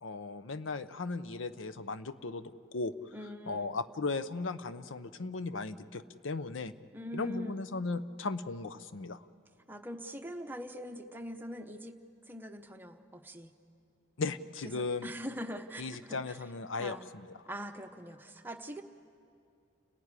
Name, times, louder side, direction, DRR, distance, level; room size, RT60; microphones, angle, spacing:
voice 1, 0.0-3.1 3.5-6.7 7.1-9.2 14.2-15.1 15.8-17.3, left 3 dB, 85° left, 13 dB, 0.7 m, -37 dB
voice 2, 3.1-3.8 6.9-7.6 9.7-12.0 12.3-13.5 14.7-16.4 16.8-17.1 17.5-18.8, equal, 10° right, 5 dB, 0.8 m, -42 dB
29.5 x 15.0 x 9.7 m, 2.5 s
head